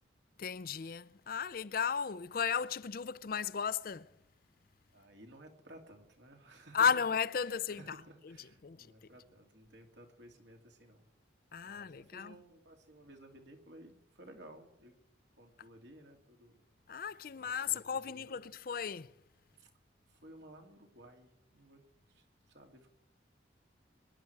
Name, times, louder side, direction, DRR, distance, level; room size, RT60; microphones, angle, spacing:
voice 1, 0.4-4.1 6.7-7.8 8.6-8.9 11.5-12.3 16.9-19.1, left 6 dB, 50° left, 0.4 m, -34 dB
voice 2, 4.9-6.9 7.4-11.1 11.6-14.9 15.4-16.6 16.9-17.0 17.3-18.6 19.6-19.7 20.1-22.9, right 1 dB, 70° right, 2.8 m, -56 dB
24.5 x 11.0 x 4.7 m
head